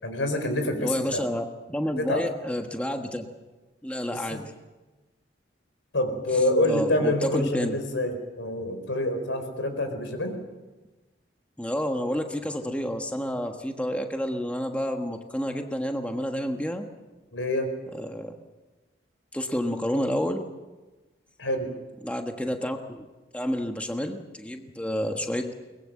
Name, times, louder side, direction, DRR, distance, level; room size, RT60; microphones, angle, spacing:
voice 1, 0.0-1.2 2.0-2.2 4.1-4.4 5.9-10.3 17.3-17.7 21.4-21.7, left 1 dB, 90° left, 7 dB, 4.6 m, -27 dB
voice 2, 0.8-3.3 3.8-4.5 6.6-7.8 11.6-16.9 18.0-18.3 19.3-20.5 22.0-23.1 23.3-25.5, equal, 5° left, 4 dB, 1.3 m, -29 dB
22.5 x 20.5 x 7.7 m, 1.2 s
head